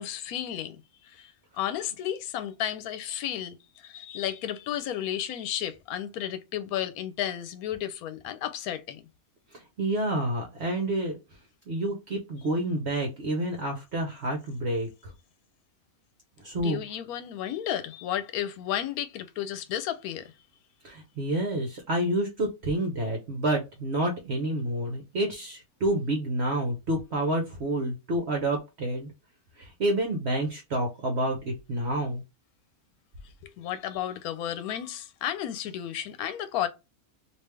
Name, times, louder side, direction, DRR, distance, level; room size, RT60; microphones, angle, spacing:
voice 1, 0.0-9.0 16.5-20.3 33.4-36.7, left 11 dB, 85° left, 1.1 m, -33 dB
voice 2, 9.5-11.2 11.7-15.1 16.4-16.8 20.8-29.1 29.6-32.2, right 1 dB, 55° right, 1.0 m, -29 dB
3.3 x 2.7 x 3.3 m
omnidirectional pair, 1.5 m